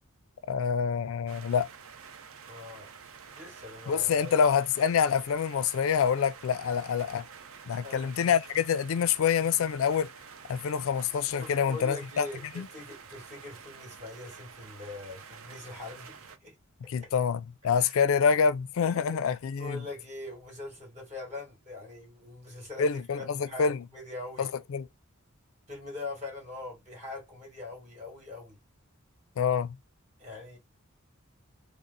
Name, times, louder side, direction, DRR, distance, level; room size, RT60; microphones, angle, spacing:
voice 1, 0.5-1.7 3.9-7.3 7.7-10.1 10.5-12.3 12.6-12.7 16.9-19.8 22.8-23.8 24.4-24.9 29.4-29.8, left 7 dB, 65° left, 0.4 m, -26 dB
sound 1, 1.3-16.4, right 6 dB, 65° right, 0.6 m, -49 dB
voice 2, 2.5-2.9 3.3-4.4 7.8-8.1 11.3-16.6 17.0-17.1 17.8-18.0 18.8-24.5 25.7-28.6 30.2-30.6, left 2 dB, 35° right, 2.3 m, -43 dB
3.7 x 2.0 x 4.0 m
head